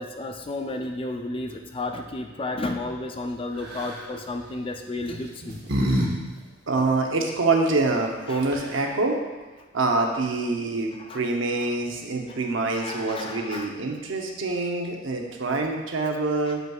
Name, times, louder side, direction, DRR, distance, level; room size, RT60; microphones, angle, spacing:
voice 1, 0.0-5.6 6.8-6.9 8.3-8.4 11.1-11.2 12.3-12.4 12.7-13.7, left 2 dB, 25° left, 4 dB, 0.4 m, -32 dB
sound 1, 3.6-4.0 5.0-6.1 6.4-6.5 8.1-8.2 8.4-8.9, equal, 55° right, 1.0 m, -27 dB
voice 2, 6.7-9.2 9.7-16.6, right 3 dB, 75° right, 2 dB, 0.8 m, -25 dB
7.6 x 5.3 x 2.4 m, 1.3 s
head